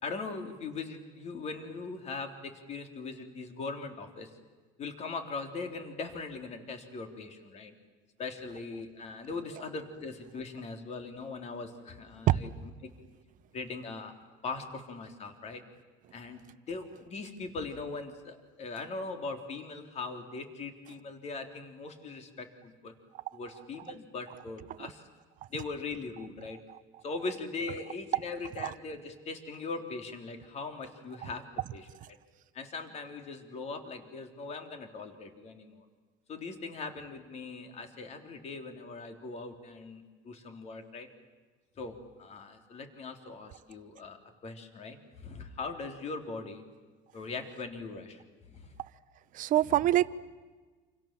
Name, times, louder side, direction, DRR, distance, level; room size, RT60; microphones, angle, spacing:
voice 1, 0.0-4.3 4.8-7.7 8.2-12.5 12.8-12.9 13.5-14.1 14.4-15.6 16.1-16.4 16.7-22.9 23.3-25.0 25.5-26.6 27.0-31.4 31.7-31.9 32.5-35.9 36.3-41.1 41.8-46.6 47.1-48.2 48.5-48.7 49.6-49.8, left 4 dB, 40° left, 6 dB, 3.5 m, -40 dB
voice 2, 49.3-50.1, right 14 dB, 50° right, 15 dB, 0.9 m, -24 dB
28.5 x 27.5 x 7.6 m, 1.4 s
cardioid pair, 140°, 18 cm